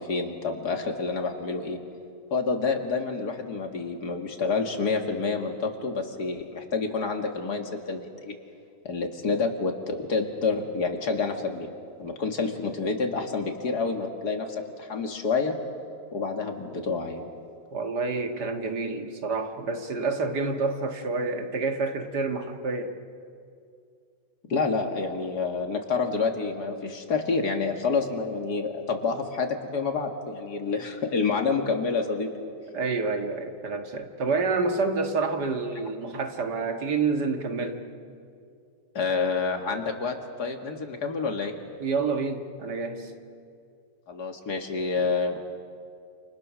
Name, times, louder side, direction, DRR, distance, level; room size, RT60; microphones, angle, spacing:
voice 1, 0.0-1.8 2.3-8.4 8.8-11.7 12.0-15.6 16.1-17.2 24.5-32.3 38.9-41.5 44.1-45.4, left 4 dB, 70° left, 4 dB, 2.6 m, -28 dB
voice 2, 17.7-23.0 32.7-37.9 41.8-43.1 45.0-45.1, right 4 dB, 75° right, 5 dB, 2.3 m, -28 dB
28.5 x 28.5 x 6.4 m, 2.4 s
omnidirectional pair, 1.8 m